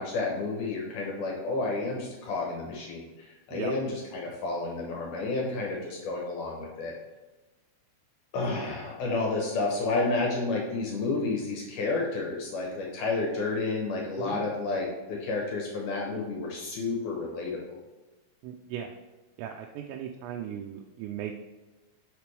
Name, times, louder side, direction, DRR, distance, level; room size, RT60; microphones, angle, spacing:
voice 1, 0.0-6.9 8.3-17.8, left 3 dB, 75° left, -1 dB, 1.8 m, -31 dB
voice 2, 18.4-18.9 19.4-21.4, right 9 dB, 90° right, 2 dB, 2.8 m, -37 dB
6.8 x 6.7 x 3.2 m, 1.2 s
omnidirectional pair, 4.9 m